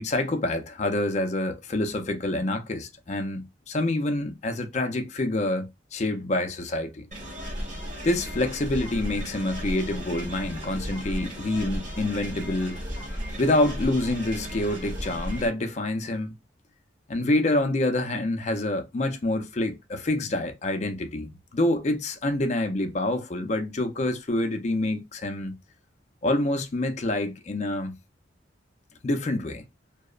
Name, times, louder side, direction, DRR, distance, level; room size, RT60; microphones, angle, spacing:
voice 1, 0.0-7.0 8.0-12.8 13.4-16.4 17.1-25.6 26.2-28.0 29.0-29.6, left 1 dB, 35° left, 0.4 m, -27 dB
sound 1, 7.1-15.5, equal, 40° right, 1.1 m, -35 dB
2.8 x 2.0 x 2.3 m
head